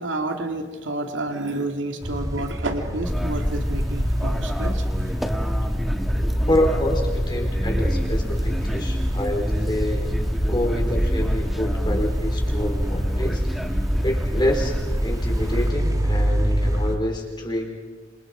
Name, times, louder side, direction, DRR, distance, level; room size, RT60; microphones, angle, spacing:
voice 1, 0.0-4.8, right 2 dB, 85° right, 5 dB, 2.3 m, -29 dB
sound 1, 2.0-17.0, equal, 20° right, 1.6 m, -28 dB
sound 2, 3.0-15.7, equal, ahead, 1.4 m, -25 dB
voice 2, 6.5-10.1 10.5-13.4 13.7-17.7, left 1 dB, 25° left, 0 dB, 4.2 m, -27 dB
27.5 x 27.0 x 5.1 m, 1.4 s
head